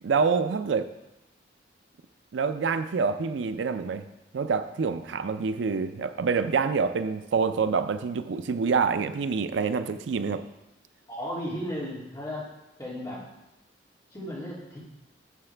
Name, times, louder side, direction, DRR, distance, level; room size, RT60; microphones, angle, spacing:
voice 1, 0.0-0.9 2.3-4.0 4.3-10.4, right 5 dB, 85° right, 11 dB, 0.4 m, -26 dB
voice 2, 11.1-12.5 12.8-13.2 14.1-14.8, equal, 20° left, -6 dB, 2.6 m, -34 dB
9.5 x 7.0 x 3.3 m, 0.93 s
head